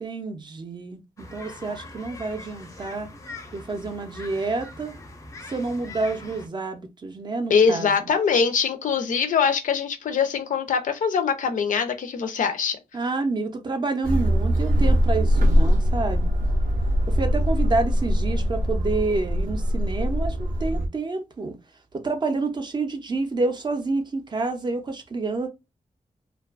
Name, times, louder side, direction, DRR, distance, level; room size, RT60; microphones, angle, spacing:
voice 1, 0.0-3.1 3.5-4.9 5.5-7.9 12.9-16.3 17.1-21.6 21.9-25.5, right 3 dB, 35° right, 0.4 m, -28 dB
sound 1, 1.2-6.5, left 2 dB, 25° left, 0.4 m, -42 dB
voice 2, 7.5-12.8, left 6 dB, 80° left, 0.4 m, -23 dB
sound 2, 14.0-20.9, equal, 85° right, 0.5 m, -22 dB
2.5 x 2.2 x 2.3 m
wide cardioid pair, 160°, 13 cm